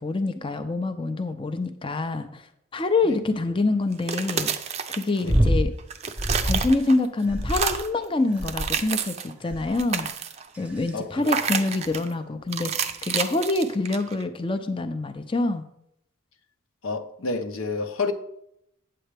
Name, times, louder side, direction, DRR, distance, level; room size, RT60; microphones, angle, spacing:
voice 1, 0.0-2.5 2.7-4.5 5.0-5.7 6.4-10.1 10.6-15.6, left 2 dB, 25° left, 0.5 m, -26 dB
sound 1, 3.9-5.5 5.8-7.1 7.4-8.0 8.4-9.3 9.7-10.5 11.2-12.1 12.5-14.2, right 7 dB, 30° right, 0.5 m, -29 dB
sound 2, 5.3-5.7 6.2-6.7 7.3-7.9 8.4-8.9 9.5-9.8 10.5-10.9 11.9-12.0, equal, 5° right, 0.8 m, -25 dB
voice 2, 10.9-11.6 16.8-18.1, left 3 dB, 85° left, 0.8 m, -30 dB
8.8 x 7.6 x 3.4 m
head